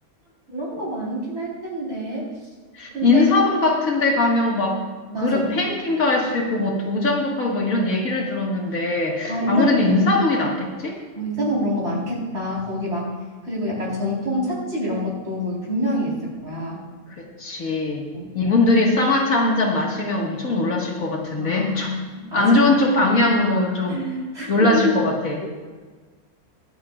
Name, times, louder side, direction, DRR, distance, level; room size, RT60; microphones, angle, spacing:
voice 1, 0.5-2.3 2.9-3.3 5.1-5.5 9.3-10.0 11.1-13.1 13.4-16.8 18.1-18.3 21.4-22.6 23.9-25.0, equal, 45° right, -4 dB, 4.5 m, -26 dB
voice 2, 2.7-4.8 5.2-11.0 17.2-18.1 18.3-21.9 22.3-24.0 24.5-25.5, left 2 dB, 70° left, -1 dB, 2.2 m, -21 dB
23.0 x 8.6 x 2.4 m, 1.4 s
omnidirectional pair, 1.5 m